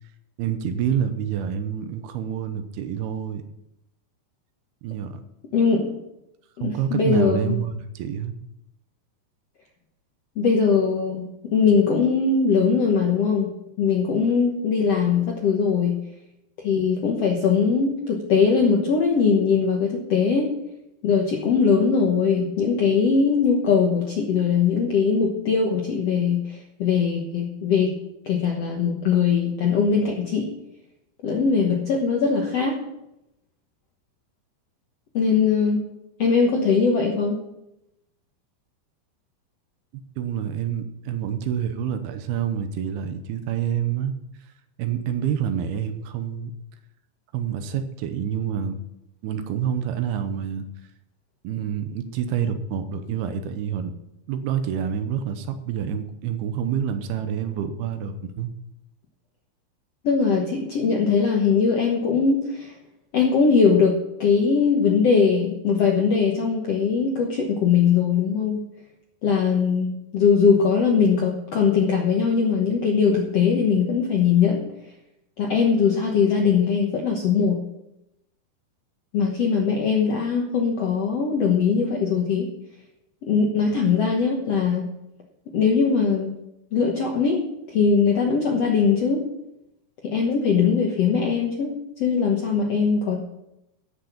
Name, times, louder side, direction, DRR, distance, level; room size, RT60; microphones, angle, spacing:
voice 1, 0.4-3.4 4.8-5.2 6.6-8.4 40.2-44.1 44.8-46.5 47.3-48.8 49.2-50.7 51.4-53.9 54.3-58.5, right 8 dB, 80° right, 9 dB, 2.8 m, -27 dB
voice 2, 5.5-5.9 6.6-7.5 10.4-13.5 13.8-15.9 16.6-20.5 21.0-27.9 28.2-30.5 31.2-32.8 35.1-35.8 36.2-37.4 60.0-62.7 63.1-68.6 69.2-74.6 75.4-77.6 79.1-82.5 83.2-84.8 85.5-86.3 86.7-89.2 90.0-91.7 92.0-93.2, left 5 dB, 65° left, 0 dB, 1.6 m, -21 dB
13.0 x 6.5 x 7.2 m, 0.87 s
omnidirectional pair, 4.6 m